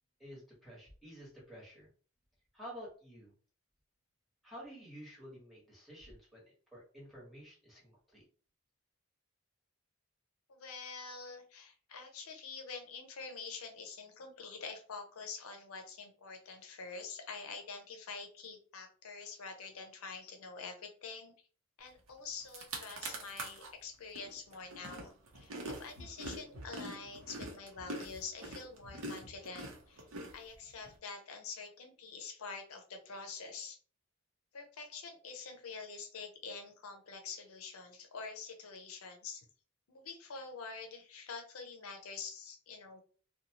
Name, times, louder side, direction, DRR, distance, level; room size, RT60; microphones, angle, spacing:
voice 1, 0.2-1.9 2.5-3.3 4.4-8.2, equal, ahead, -6 dB, 1.2 m, -51 dB
voice 2, 10.5-21.3 21.8-30.0 30.3-33.8 34.5-39.5 39.9-43.0, left 4 dB, 85° left, 4 dB, 0.6 m, -46 dB
sound 1, 22.1-22.2 22.4-23.7 24.1-30.9, right 2 dB, 80° right, 0.8 m, -44 dB
2.6 x 2.2 x 2.9 m, 0.41 s
head